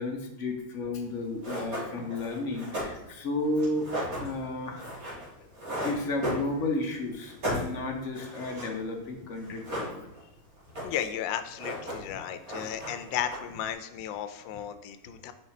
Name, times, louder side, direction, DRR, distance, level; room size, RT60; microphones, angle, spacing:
voice 1, 0.0-4.9 5.8-10.1, left 2 dB, 55° left, 3 dB, 0.9 m, -33 dB
sound 1, 1.0-1.1 1.4-6.9 7.2-8.8 9.0-9.1 9.4-10.3 10.6-11.2 11.4-12.2 12.4-13.7, equal, 50° right, 3.1 m, -36 dB
voice 2, 10.8-15.3, left 10 dB, 85° left, 10 dB, 1.3 m, -34 dB
5.4 x 4.9 x 4.1 m, 0.91 s
omnidirectional pair, 2.0 m